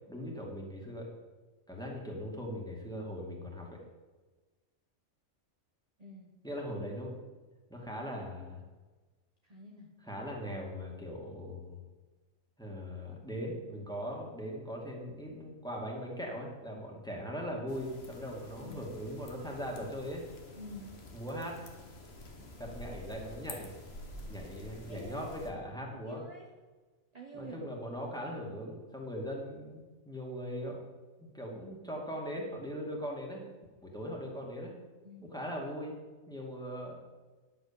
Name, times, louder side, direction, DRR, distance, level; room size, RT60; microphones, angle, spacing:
voice 1, 0.1-1.1 1.7-3.8 6.4-7.2 7.7-8.6 10.0-11.8 12.6-20.2 21.1-21.6 22.4-23.7 24.3-26.2 27.3-30.8 31.3-33.4 33.8-34.7 35.2-35.9 36.3-37.0, equal, 5° left, -2 dB, 2.4 m, -40 dB
voice 2, 6.0-6.3 9.5-10.0 18.6-18.8 20.6-21.0 24.9-25.4 26.0-26.5 27.1-27.6 35.0-35.3, right 1 dB, 30° right, 0 dB, 1.2 m, -48 dB
sound 1, 17.7-25.5, left 1 dB, 50° left, 1.7 m, -49 dB
10.0 x 7.8 x 7.1 m, 1.3 s
omnidirectional pair, 1.4 m